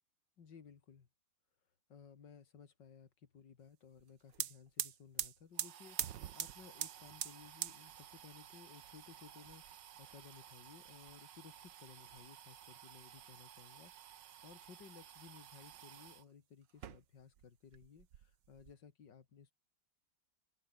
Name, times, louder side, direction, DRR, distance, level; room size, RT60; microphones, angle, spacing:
voice 1, 0.4-1.1 1.9-19.5, left 6 dB, 80° left, 2.7 m, -59 dB
sound 1, 4.0-4.1 4.3-16.2 16.7-17.5 17.7-18.7, right 10 dB, 85° right, 1.8 m, -47 dB
open air
omnidirectional pair, 1.9 m